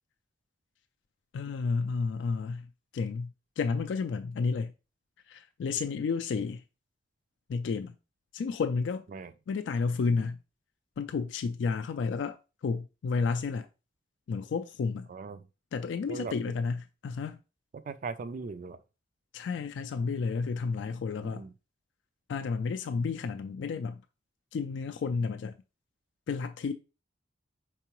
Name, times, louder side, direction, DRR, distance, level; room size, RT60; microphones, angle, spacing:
voice 1, 1.3-2.7 2.9-4.7 5.3-6.6 7.5-8.0 8.3-9.0 9.5-10.4 11.0-12.4 12.6-13.7 14.3-15.1 15.7-17.4 19.3-21.4 22.3-24.0 24.5-25.5 26.3-26.7, left 4 dB, 70° left, 0.3 m, -31 dB
voice 2, 15.1-15.4 16.1-16.3 17.7-18.8 21.2-21.5, right 4 dB, 45° right, 0.3 m, -39 dB
4.6 x 3.8 x 2.9 m
head